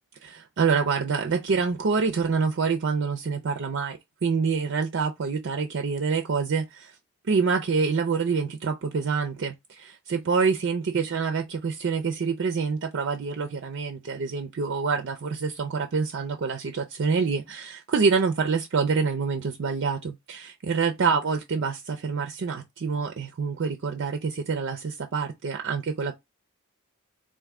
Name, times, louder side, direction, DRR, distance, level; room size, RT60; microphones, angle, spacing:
voice 1, 0.2-6.9 7.3-26.1, right 5 dB, 55° right, 0.5 m, -26 dB
3.7 x 2.5 x 3.4 m
head